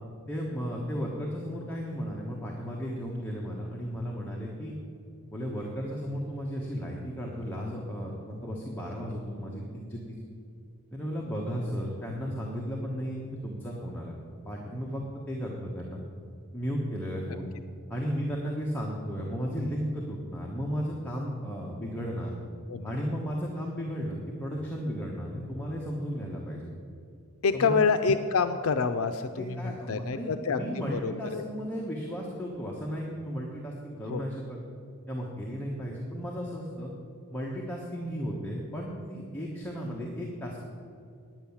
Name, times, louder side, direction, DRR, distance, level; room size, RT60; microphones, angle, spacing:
voice 1, 0.3-4.7 5.3-10.2 10.9-14.2 14.4-16.0 16.5-17.5 17.9-22.3 22.8-26.7 27.5-27.8 29.4-34.6 35.1-36.9 37.3-40.6, equal, 10° left, -3 dB, 1.2 m, -34 dB
voice 2, 27.4-30.6 30.9-31.5 34.1-34.2, left 5 dB, 70° left, 8 dB, 0.5 m, -27 dB
10.0 x 8.9 x 7.2 m, 2.4 s
head